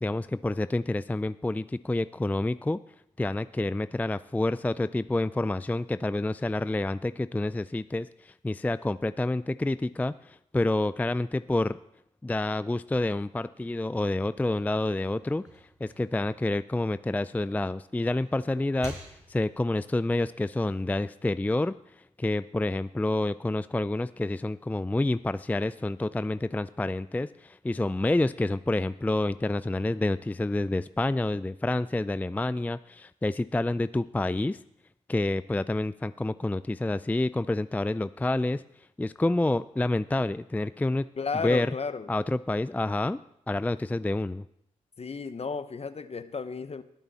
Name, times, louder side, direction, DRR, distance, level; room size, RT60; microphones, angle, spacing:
voice 1, 0.0-2.8 3.2-11.8 12.2-19.0 19.3-21.8 22.2-34.6 35.1-38.6 39.0-41.1 41.4-41.7 42.1-43.2 43.5-44.4, left 2 dB, 10° left, 15 dB, 0.4 m, -28 dB
sound 1, 14.4-17.5 17.9-19.7, right 1 dB, 50° right, 6.0 m, -49 dB
voice 2, 41.2-42.1 45.0-46.8, left 5 dB, 45° left, 12 dB, 1.0 m, -33 dB
20.5 x 6.9 x 4.2 m, 0.77 s
supercardioid pair, 40°, 15 cm